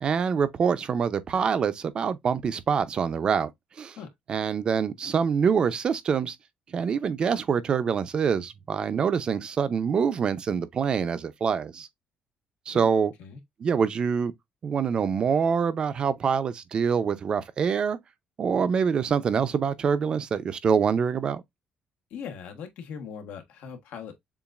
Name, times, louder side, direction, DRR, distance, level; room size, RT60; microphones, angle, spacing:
voice 1, 0.0-3.5 3.8-4.0 4.3-6.4 6.7-11.9 12.7-13.1 13.6-14.3 14.6-18.0 18.4-21.4, right 6 dB, 35° right, 0.6 m, -25 dB
voice 2, 22.1-24.1, left 7 dB, 80° left, 1.3 m, -40 dB
7.0 x 2.6 x 2.4 m
cardioid pair, 165°, 3 cm